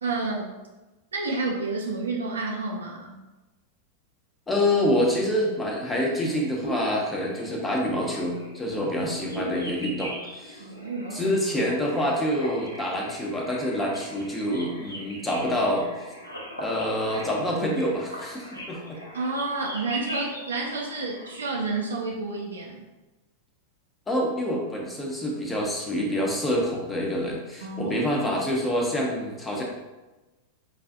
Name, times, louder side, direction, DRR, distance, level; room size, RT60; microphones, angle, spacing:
voice 1, 0.0-0.5 1.1-3.2 10.6-11.7 19.1-22.9 27.6-28.1, right 3 dB, 70° right, -2 dB, 0.5 m, -30 dB
voice 2, 4.5-10.6 11.1-15.9 16.6-19.0 24.1-29.6, left 1 dB, 15° left, 0 dB, 0.8 m, -27 dB
sound 1, 5.6-21.5, right 1 dB, 85° left, 0.6 m, -40 dB
4.8 x 2.4 x 2.4 m, 1.1 s
figure-of-eight pair, 90°, 0 cm